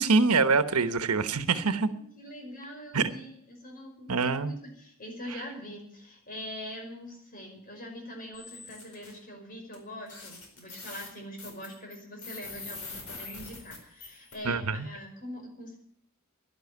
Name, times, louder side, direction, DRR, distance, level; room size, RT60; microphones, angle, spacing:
voice 1, 0.0-1.9 2.9-3.1 4.1-4.5 14.4-14.9, right 4 dB, 90° right, 12 dB, 1.1 m, -25 dB
voice 2, 1.3-15.7, equal, 40° left, 2 dB, 5.5 m, -43 dB
sound 1, 8.3-9.1 9.7-9.8 10.1-14.3, left 3 dB, 70° left, 4.6 m, -43 dB
11.5 x 11.0 x 9.7 m, 0.67 s
head